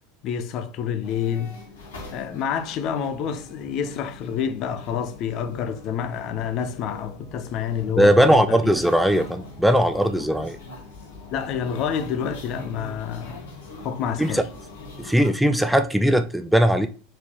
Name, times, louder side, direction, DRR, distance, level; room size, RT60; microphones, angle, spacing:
voice 1, 0.2-1.5 2.1-8.7 11.3-14.4, left 8 dB, 45° left, 0.6 m, -28 dB
sound 1, 1.0-15.3, left 2 dB, 70° left, 1.3 m, -42 dB
voice 2, 8.0-10.6 14.2-14.4 15.0-16.9, equal, ahead, 0.3 m, -19 dB
4.4 x 3.9 x 3.0 m
figure-of-eight pair, 80°, 0 cm